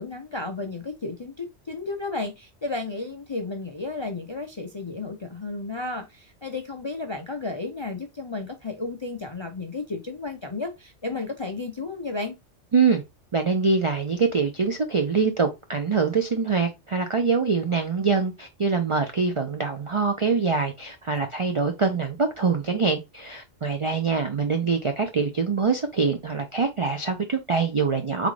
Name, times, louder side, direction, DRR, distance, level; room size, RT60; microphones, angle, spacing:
voice 1, 0.0-12.4 21.2-21.3, left 3 dB, 45° left, 0.3 m, -33 dB
voice 2, 12.7-13.0 13.3-28.3, right 5 dB, 55° right, 0.3 m, -24 dB
3.8 x 3.6 x 3.1 m
omnidirectional pair, 1.2 m